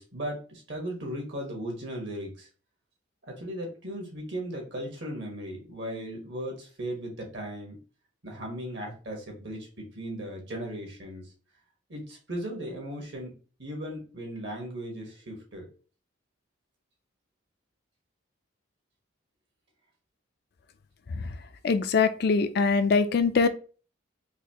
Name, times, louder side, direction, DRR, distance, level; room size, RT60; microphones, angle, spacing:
voice 1, 0.0-2.5 3.2-7.8 8.2-11.3 11.9-15.7, equal, 55° right, 0 dB, 1.3 m, -37 dB
voice 2, 21.6-23.5, left 4 dB, 50° left, 10 dB, 0.3 m, -23 dB
4.0 x 2.6 x 2.8 m, 0.37 s
head